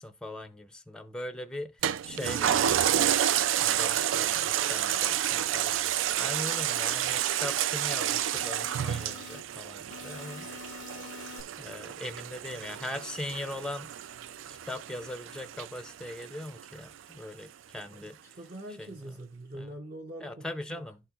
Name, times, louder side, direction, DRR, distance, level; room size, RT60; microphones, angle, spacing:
voice 1, 0.0-2.9 3.6-5.8 6.2-10.5 11.5-13.9 14.6-18.4 18.8-18.9 19.5-19.7 20.2-21.0, left 1 dB, 5° left, 0.4 m, -40 dB
Toilet flush, 1.8-16.6 17.1-17.2, right 10 dB, 85° right, 0.3 m, -30 dB
sound 1, 4.3-5.4 5.9-7.4 7.9-9.4 9.9-11.4, left 9 dB, 80° left, 0.5 m, -49 dB
voice 2, 18.3-20.8, right 1 dB, 45° right, 0.7 m, -44 dB
11.5 x 4.3 x 2.3 m
head